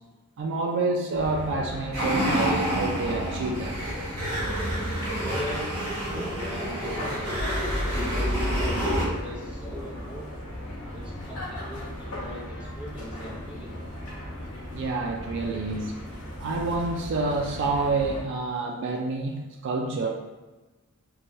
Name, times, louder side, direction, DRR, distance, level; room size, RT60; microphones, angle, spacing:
voice 1, 0.4-3.8 14.7-16.0 16.4-20.1, right 3 dB, 55° right, 1 dB, 0.3 m, -28 dB
sound 1, 1.1-18.2, left 1 dB, 70° left, 0.8 m, -37 dB
sound 2, 1.9-9.1, equal, 80° right, 0.8 m, -28 dB
voice 2, 5.2-10.4 10.9-13.9, equal, 5° right, -7 dB, 0.7 m, -40 dB
3.1 x 2.2 x 2.6 m, 1.2 s
head